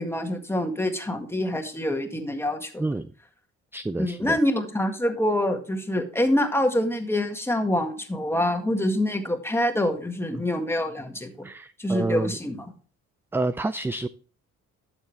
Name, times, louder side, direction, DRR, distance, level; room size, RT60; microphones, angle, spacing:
voice 1, 0.0-2.8 4.0-11.5 11.8-12.7, left 1 dB, 10° left, 5 dB, 1.8 m, -26 dB
voice 2, 2.8-3.1 3.7-4.4 10.3-10.4 11.4-12.4 13.3-14.1, right 2 dB, 10° right, 13 dB, 0.3 m, -29 dB
12.0 x 7.1 x 3.3 m, 0.38 s
cardioid pair, 90°, 30 cm